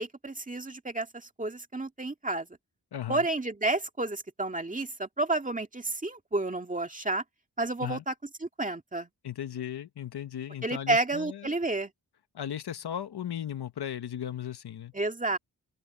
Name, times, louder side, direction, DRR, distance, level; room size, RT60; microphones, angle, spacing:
voice 1, 0.0-2.5 3.1-7.2 7.6-8.1 8.4-9.1 10.6-11.9 14.9-15.4, right 2 dB, 20° right, 2.0 m, -30 dB
voice 2, 2.9-3.3 7.8-8.0 9.2-11.5 12.3-14.9, left 10 dB, 90° left, 1.1 m, -36 dB
open air
wide cardioid pair, 105°, 38 cm